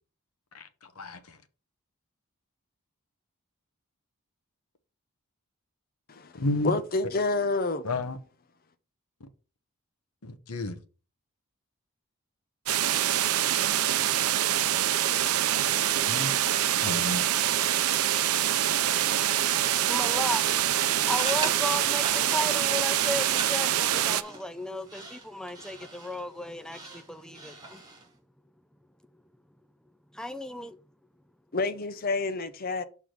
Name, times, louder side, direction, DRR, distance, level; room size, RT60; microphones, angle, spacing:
voice 1, 0.5-1.4 6.4-6.7 7.8-8.2 10.2-10.8 16.1-16.3 16.8-17.2, left 2 dB, 90° left, 1.0 m, -31 dB
voice 2, 6.1-7.9 31.5-32.8, left 3 dB, 40° left, 0.6 m, -29 dB
sound 1, 12.7-24.2, right 11 dB, 85° right, 0.5 m, -25 dB
voice 3, 19.9-27.8 30.1-30.8, left 1 dB, 5° left, 0.4 m, -35 dB
sound 2, 20.8-28.1, right 3 dB, 20° right, 2.4 m, -41 dB
6.5 x 3.6 x 6.0 m
head